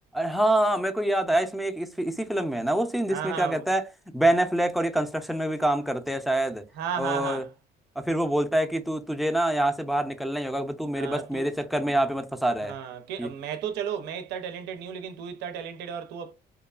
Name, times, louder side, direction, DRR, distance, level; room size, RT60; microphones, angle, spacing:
voice 1, 0.1-3.9 4.1-6.6 7.0-7.4 8.0-12.8 13.2-13.3, right 1 dB, ahead, 0.4 m, -26 dB
voice 2, 3.1-3.6 6.8-7.5 11.0-11.5 11.8-11.9 12.7-16.3, right 8 dB, 85° right, 0.5 m, -34 dB
2.9 x 2.3 x 2.3 m
cardioid pair, 110°, 17 cm